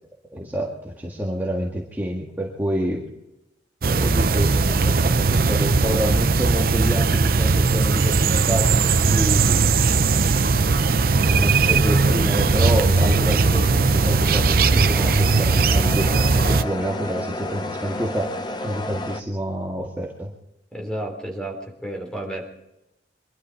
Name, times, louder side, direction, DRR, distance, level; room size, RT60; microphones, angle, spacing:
voice 1, 0.3-3.1 3.8-9.7 10.9-20.3, equal, 10° right, -3 dB, 1.9 m, -28 dB
sound 1, 3.8-16.6, right 4 dB, 55° right, 0.6 m, -19 dB
sound 2, 8.4-19.2, left 1 dB, 25° left, 0.8 m, -34 dB
voice 2, 20.7-22.5, right 1 dB, 5° left, 1 dB, 3.7 m, -31 dB
24.0 x 12.5 x 4.7 m, 0.89 s
head